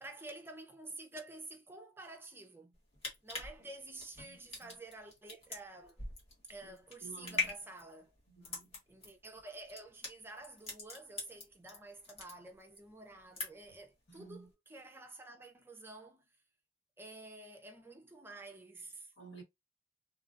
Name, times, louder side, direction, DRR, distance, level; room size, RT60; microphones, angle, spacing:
voice 1, 0.0-2.8 3.2-6.1 6.5-8.1 8.9-16.3 17.0-19.1, right 2 dB, 15° right, 0.5 m, -50 dB
sound 1, 2.7-11.8 12.0-12.8 13.1-13.8 14.1-14.3, left 4 dB, 35° left, 1.3 m, -42 dB
voice 2, 4.2-4.8 6.6-6.7 7.0-7.5 8.3-8.8 14.1-14.5 19.2-19.4, right 4 dB, 80° left, 1.3 m, -53 dB
3.2 x 2.3 x 2.5 m
head